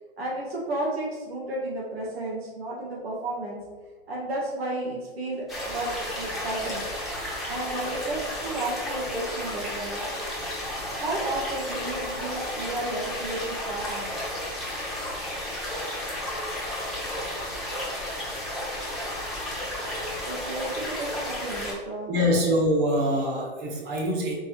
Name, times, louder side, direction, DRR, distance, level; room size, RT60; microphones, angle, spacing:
voice 1, 0.2-3.6 4.1-5.9 6.1-6.8 7.5-10.0 10.9-14.1 20.3-22.1, right 2 dB, 85° right, -4 dB, 1.5 m, -32 dB
sound 1, 5.5-21.7, left 1 dB, ahead, 0.9 m, -33 dB
voice 2, 22.1-24.3, equal, 30° right, -2 dB, 1.1 m, -24 dB
4.5 x 2.9 x 3.1 m, 1.4 s
hypercardioid pair, 135°, 30 cm